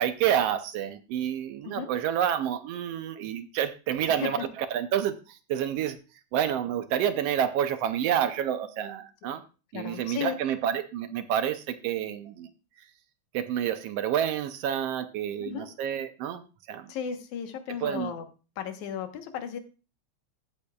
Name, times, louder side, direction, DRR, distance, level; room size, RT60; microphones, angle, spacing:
voice 1, 0.0-4.4 4.7-6.0 6.3-9.4 9.7-12.5 13.3-16.4 16.7-16.9 17.8-18.1, right 10 dB, 75° right, 11 dB, 1.5 m, -28 dB
voice 2, 4.1-4.5 9.3-9.4 9.7-10.4 15.4-15.7 16.9-18.3 18.6-19.6, left 8 dB, 85° left, 7 dB, 2.5 m, -35 dB
15.0 x 8.1 x 2.3 m, 0.33 s
omnidirectional pair, 3.3 m